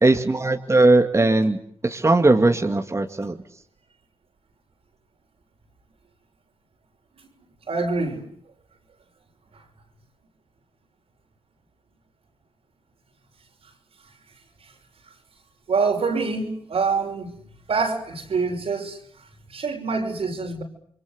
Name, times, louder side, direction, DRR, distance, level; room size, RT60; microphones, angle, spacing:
voice 1, 0.0-3.4, right 2 dB, 30° right, 4 dB, 2.3 m, -19 dB
voice 2, 7.7-8.3 15.7-17.3 17.7-19.0 19.5-20.6, right 4 dB, 75° right, 2 dB, 6.0 m, -25 dB
29.0 x 23.5 x 8.2 m, 0.64 s
cardioid pair, 55°, 10 cm